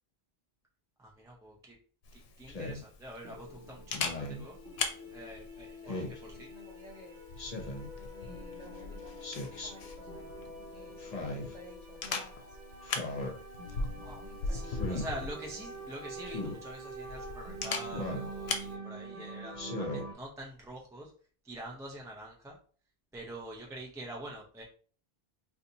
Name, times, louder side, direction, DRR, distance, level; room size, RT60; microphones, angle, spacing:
voice 1, 1.0-1.8 2.1-4.6 5.1-6.0 6.4-6.5 14.0-21.1 21.4-22.6 23.1-24.6, right 1 dB, 5° right, -2 dB, 0.5 m, -45 dB
Camera, 2.0-18.7, left 4 dB, 80° left, 0.9 m, -41 dB
Speech synthesizer, 2.5-2.8 3.9-4.4 5.9-6.2 7.4-7.9 9.2-9.7 11.0-11.5 12.8-13.3 14.7-15.1 16.3-16.6 17.9-18.3 19.5-20.1, left 2 dB, 45° left, 0.8 m, -38 dB
sound 1, 3.2-20.1, right 1 dB, 55° right, 1.0 m, -46 dB
voice 2, 5.7-7.2 7.9-9.2 9.5-10.3 10.7-12.6 13.9-14.8 23.5-23.8, equal, 40° right, -2 dB, 1.4 m, -53 dB
4.0 x 2.5 x 2.8 m, 0.43 s
omnidirectional pair, 1.0 m